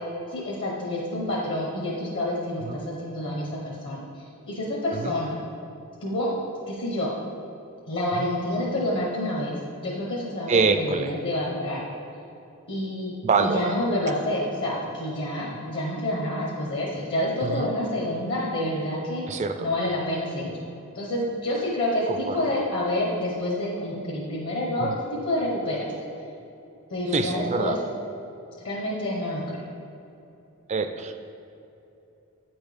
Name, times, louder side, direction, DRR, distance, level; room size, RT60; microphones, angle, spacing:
voice 1, 0.3-5.3 6.0-6.3 6.7-7.1 7.9-9.5 9.8-11.8 12.7-19.3 19.6-20.5 20.9-24.9 25.2-25.9 26.9-27.8 28.6-29.7, left 1 dB, 55° left, -4 dB, 1.0 m, -28 dB
voice 2, 10.5-11.1 13.2-13.8 17.4-17.7 19.3-19.7 22.1-22.4 24.8-24.9 27.1-27.8 30.7-31.1, right 4 dB, 30° right, 8 dB, 0.4 m, -25 dB
8.4 x 4.4 x 5.0 m, 2.8 s
head